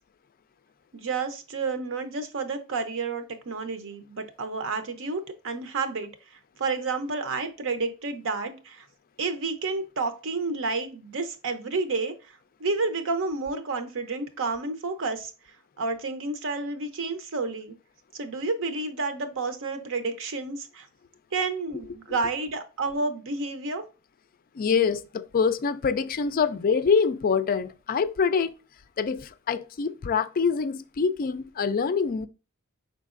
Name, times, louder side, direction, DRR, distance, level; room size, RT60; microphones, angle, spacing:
voice 1, 0.9-6.1 6.6-8.9 9.2-12.1 12.6-15.3 15.8-17.7 18.1-20.9 21.3-23.8, right 3 dB, 60° right, 0.7 m, -30 dB
voice 2, 24.5-28.5 29.0-32.3, left 5 dB, 40° left, 0.4 m, -25 dB
5.4 x 3.9 x 2.5 m
head